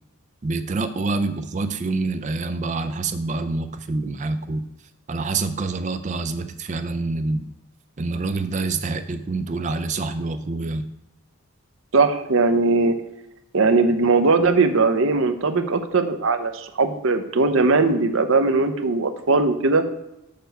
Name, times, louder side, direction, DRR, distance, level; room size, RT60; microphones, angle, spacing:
voice 1, 0.4-4.7 5.1-7.5 8.0-10.8, right 3 dB, 35° right, 9 dB, 0.4 m, -26 dB
voice 2, 11.9-13.0 13.5-19.8, right 3 dB, 65° right, 8 dB, 0.7 m, -19 dB
6.7 x 6.7 x 4.6 m, 0.92 s
head